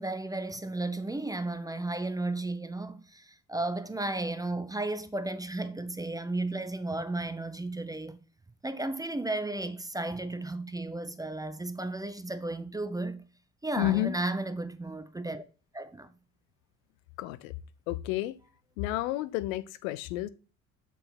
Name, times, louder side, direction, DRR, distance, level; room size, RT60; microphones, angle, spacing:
voice 1, 0.0-8.2 8.6-13.2 13.6-15.4 15.7-16.1, right 2 dB, 10° right, 0.5 m, -34 dB
voice 2, 13.8-14.2 17.2-17.5 17.9-18.4 18.8-20.3, left 16 dB, 75° left, 0.5 m, -30 dB
6.6 x 4.0 x 4.1 m
hypercardioid pair, 55°, 41 cm